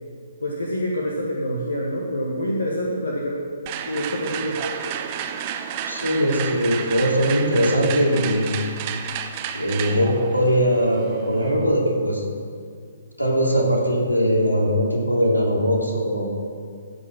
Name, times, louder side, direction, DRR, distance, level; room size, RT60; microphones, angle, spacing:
voice 1, 0.4-3.4 3.9-4.6, equal, 65° left, -2 dB, 1.6 m, -26 dB
sound 1, 3.7-11.6, right 8 dB, 30° right, 0.8 m, -32 dB
voice 2, 5.9-8.5 9.5-12.2 13.2-16.3, equal, 85° left, -2 dB, 3.0 m, -20 dB
15.5 x 5.6 x 7.5 m, 2.2 s
figure-of-eight pair, 125°, 0 cm